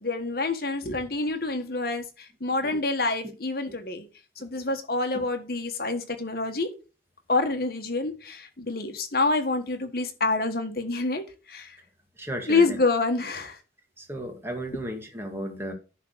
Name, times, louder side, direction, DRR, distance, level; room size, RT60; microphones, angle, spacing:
voice 1, 0.0-4.0 4.4-6.7 7.3-11.2 11.5-11.7 12.5-13.6, left 3 dB, 55° left, 1.4 m, -27 dB
voice 2, 12.2-12.8 13.2-13.3 14.0-15.7, right 1 dB, 15° right, 1.7 m, -35 dB
10.5 x 3.7 x 6.1 m
head